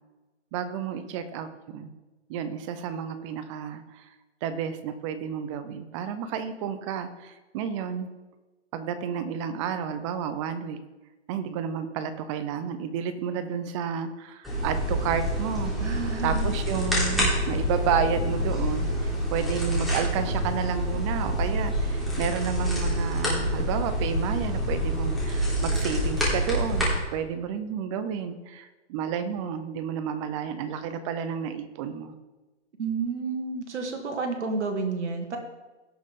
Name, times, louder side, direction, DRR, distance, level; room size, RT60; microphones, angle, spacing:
voice 1, 0.5-1.9 2.3-4.1 4.4-8.1 8.7-10.8 11.3-15.7 16.2-32.1, right 7 dB, 25° right, 11 dB, 0.7 m, -31 dB
sound 1, 14.4-27.0, equal, ahead, 3.5 m, -27 dB
voice 2, 15.8-16.5 32.8-35.4, right 4 dB, 70° right, 3 dB, 2.3 m, -30 dB
17.0 x 6.5 x 3.7 m, 1.1 s
hypercardioid pair, 135°, 35 cm